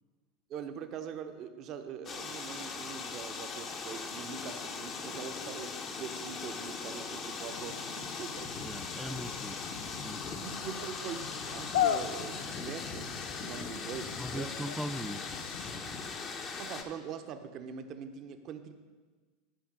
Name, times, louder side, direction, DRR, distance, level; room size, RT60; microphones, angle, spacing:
voice 1, 0.5-8.5 10.4-14.5 16.6-18.7, right 7 dB, 45° right, 7 dB, 0.8 m, -43 dB
sound 1, 2.1-16.8, left 4 dB, 35° left, 1.0 m, -40 dB
sound 2, 7.5-15.7, left 10 dB, 70° left, 0.4 m, -38 dB
voice 2, 8.6-9.6 10.0-10.4 14.2-15.3, equal, 5° right, 12 dB, 0.4 m, -39 dB
11.5 x 5.1 x 5.2 m, 1.4 s
hypercardioid pair, 85°, 0 cm